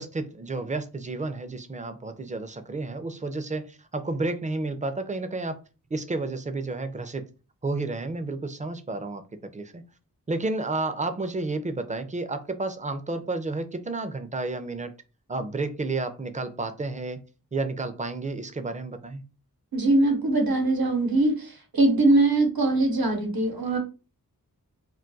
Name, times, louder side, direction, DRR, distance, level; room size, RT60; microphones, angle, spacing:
voice 1, 0.0-5.6 5.9-7.2 7.6-9.2 9.5-9.8 10.3-14.9 15.3-17.2 17.5-19.2, right 3 dB, 20° right, 0.4 m, -31 dB
voice 2, 19.7-23.8, right 2 dB, 85° right, 0.8 m, -22 dB
2.3 x 2.2 x 3.8 m
wide cardioid pair, 60°, 36 cm